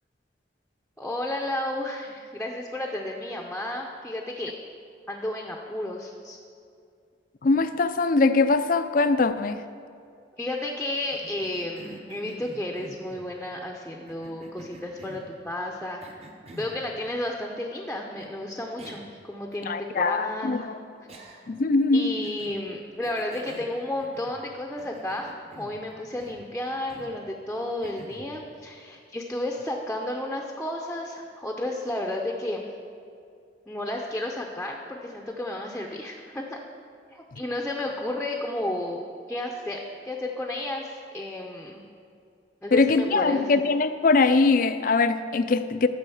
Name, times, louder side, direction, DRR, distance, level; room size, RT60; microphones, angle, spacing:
voice 1, 1.0-4.6 5.1-6.4 10.4-16.0 16.5-20.7 21.9-32.7 33.7-36.6 37.1-39.0 39.3-41.8 42.6-43.4, left 1 dB, 5° left, 0.6 m, -32 dB
voice 2, 7.4-9.6 19.6-20.8 21.5-22.2 37.3-37.4 42.7-45.9, left 3 dB, 50° left, 0.4 m, -22 dB
Cough, 11.1-13.3 14.1-15.3 16.0-16.8 18.2-18.3 18.8-19.2 19.5-19.6 21.1-21.6 22.2-22.6 23.0-24.5 24.8-25.8 26.2-26.5 26.9-27.2 27.8-28.3, right 1 dB, 35° right, 1.0 m, -47 dB
12.5 x 5.0 x 7.0 m
head